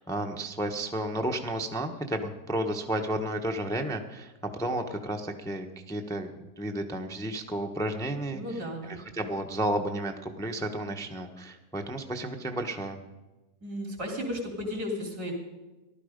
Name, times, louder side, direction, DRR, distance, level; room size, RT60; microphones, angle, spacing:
voice 1, 0.0-8.4 8.9-13.0, right 1 dB, 5° left, 3 dB, 0.8 m, -32 dB
voice 2, 8.3-9.0 13.6-15.3, left 1 dB, 70° right, 1 dB, 3.9 m, -34 dB
15.0 x 12.0 x 5.2 m, 1.1 s
omnidirectional pair, 1.7 m